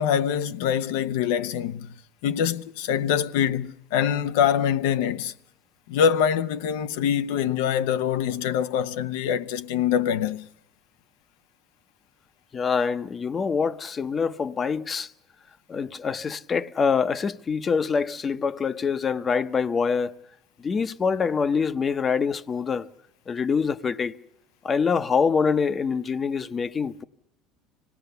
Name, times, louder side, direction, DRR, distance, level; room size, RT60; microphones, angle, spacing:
voice 1, 0.0-1.9 2.2-5.3 5.9-10.5, left 8 dB, 85° left, 0.8 m, -24 dB
voice 2, 12.5-15.1 15.7-20.2 20.6-22.9 23.3-24.2 24.6-27.0, left 5 dB, 25° left, 0.7 m, -25 dB
26.0 x 18.5 x 6.8 m
cardioid pair, 125°, 0 cm